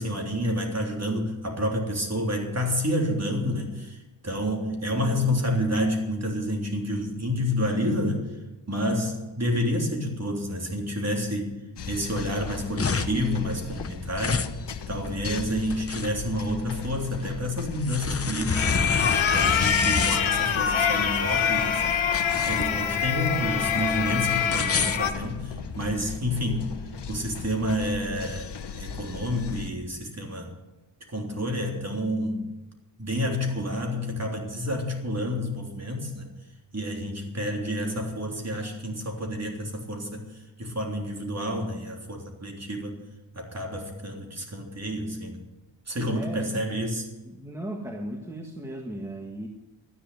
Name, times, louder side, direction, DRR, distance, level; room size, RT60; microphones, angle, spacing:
voice 1, 0.0-8.2 8.7-11.5 11.9-14.5 14.9-21.8 22.3-26.7 27.1-28.5 28.8-30.5 31.1-32.4 33.0-36.3 36.7-40.2 40.6-43.0 43.3-45.4 45.9-47.1, equal, 35° right, 1 dB, 3.4 m, -29 dB
sound 1, 11.8-29.7, left 6 dB, 60° left, 1.2 m, -38 dB
sound 2, 12.5-25.9, left 5 dB, 30° left, 0.8 m, -30 dB
sound 3, 18.5-25.1, left 7 dB, 85° left, 1.7 m, -25 dB
voice 2, 46.1-46.6 47.2-49.5, right 1 dB, 5° right, 2 dB, 1.7 m, -36 dB
12.5 x 10.0 x 9.2 m, 1.1 s
cardioid pair, 85°, 46 cm